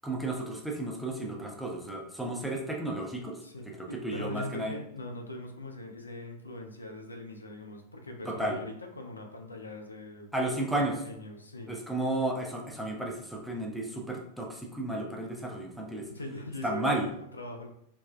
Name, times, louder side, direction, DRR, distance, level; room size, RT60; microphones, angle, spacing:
voice 1, 0.0-3.4 4.0-4.7 8.3-8.6 10.3-10.9 11.7-16.1 16.6-17.1, right 2 dB, ahead, -1 dB, 0.5 m, -32 dB
voice 2, 3.4-10.3 10.6-11.8 16.1-17.7, left 1 dB, 80° left, 3 dB, 0.4 m, -42 dB
3.3 x 2.1 x 2.4 m, 0.71 s
figure-of-eight pair, 90°, 0 cm